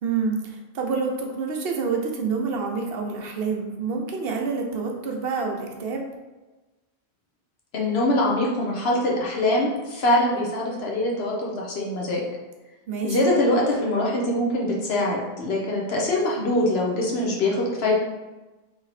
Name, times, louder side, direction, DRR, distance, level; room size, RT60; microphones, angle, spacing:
voice 1, 0.0-6.0 12.9-13.2, right 4 dB, 70° right, 1 dB, 0.9 m, -27 dB
voice 2, 7.7-12.2 13.0-17.9, left 1 dB, 75° left, -3 dB, 1.1 m, -23 dB
3.4 x 3.0 x 4.0 m, 1.2 s
omnidirectional pair, 1.1 m